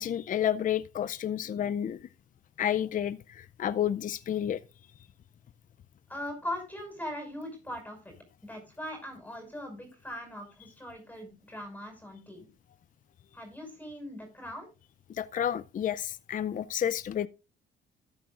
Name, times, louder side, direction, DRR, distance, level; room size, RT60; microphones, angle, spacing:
voice 1, 0.0-2.0 2.6-4.6 15.2-17.3, left 10 dB, 40° left, 0.5 m, -30 dB
voice 2, 6.1-8.1 8.4-12.5 13.3-14.7, left 1 dB, 10° left, 5.6 m, -40 dB
13.5 x 11.0 x 2.5 m
cardioid pair, 90°, 20 cm